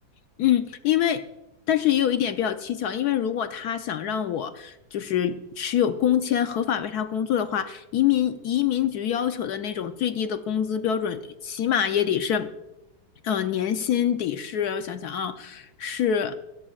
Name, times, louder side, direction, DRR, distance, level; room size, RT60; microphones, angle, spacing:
voice 1, 0.4-1.2 1.7-12.5 13.2-16.4, left 9 dB, 65° left, 9 dB, 1.0 m, -25 dB
27.0 x 12.5 x 2.4 m, 0.96 s
omnidirectional pair, 2.1 m